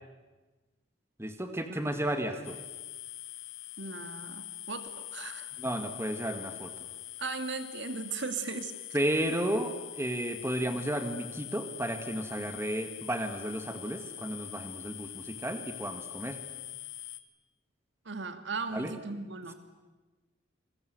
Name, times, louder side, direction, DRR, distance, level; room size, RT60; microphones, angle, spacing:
voice 1, 1.2-2.6 5.6-6.9 8.9-16.4 18.7-18.9, right 1 dB, 15° right, 6 dB, 1.9 m, -33 dB
sound 1, 2.4-17.2, left 14 dB, 75° left, 1.5 m, -44 dB
voice 2, 3.8-5.5 7.2-8.7 18.1-19.5, right 4 dB, 60° right, 8 dB, 2.0 m, -37 dB
28.5 x 22.5 x 8.0 m, 1.2 s
head